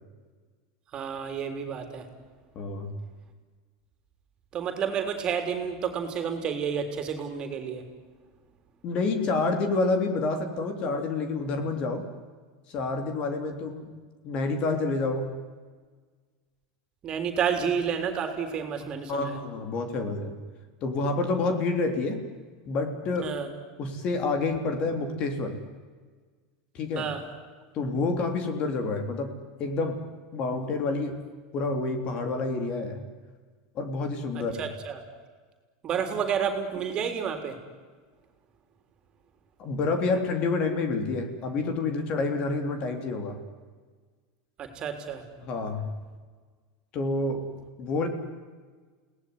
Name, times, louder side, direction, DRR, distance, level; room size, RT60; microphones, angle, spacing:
voice 1, 0.9-2.0 4.5-7.8 17.0-19.3 23.2-23.5 27.0-27.2 34.6-35.0 35.8-37.5 44.6-45.2, right 7 dB, 30° right, 6 dB, 3.7 m, -30 dB
voice 2, 2.6-2.9 8.8-12.0 12.7-13.9 14.2-15.3 19.1-20.3 20.8-22.2 22.7-23.3 23.8-25.5 26.7-27.1 27.7-29.3 29.6-30.0 30.3-31.2 31.5-33.0 33.8-34.7 39.6-43.4 45.4-45.9 46.9-47.4 47.8-48.1, left 3 dB, 40° left, 7 dB, 3.6 m, -28 dB
29.5 x 18.5 x 9.8 m, 1.5 s
supercardioid pair, 135°, 3 cm